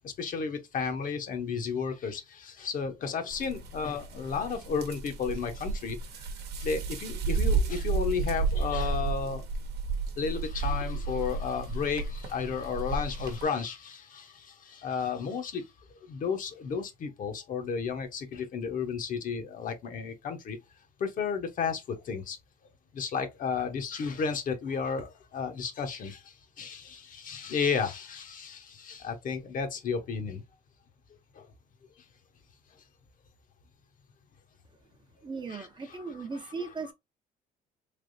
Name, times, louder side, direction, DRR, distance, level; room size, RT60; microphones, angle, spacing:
voice 1, 0.0-6.3 6.6-9.5 10.2-15.7 16.1-20.6 21.0-22.4 22.9-30.4 31.3-31.5 35.5-36.0, left 6 dB, 50° left, 0.9 m, -33 dB
sound 1, 3.3-13.4, right 4 dB, 75° right, 0.9 m, -32 dB
voice 2, 35.2-36.9, right 4 dB, 25° right, 0.6 m, -37 dB
3.3 x 3.0 x 2.6 m
cardioid pair, 110°, 17 cm